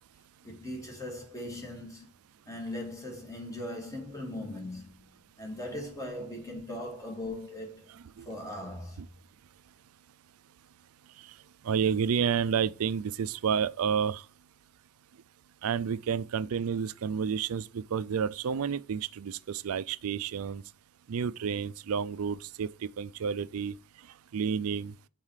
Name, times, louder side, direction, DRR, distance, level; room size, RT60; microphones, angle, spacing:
voice 1, 0.4-2.1 2.5-5.1 5.4-7.9 8.3-9.0, left 1 dB, 15° left, 2.2 m, -39 dB
voice 2, 11.6-14.3 15.6-20.6 21.1-23.8 24.3-24.9, right 7 dB, 70° right, 0.4 m, -30 dB
5.7 x 4.5 x 4.8 m
head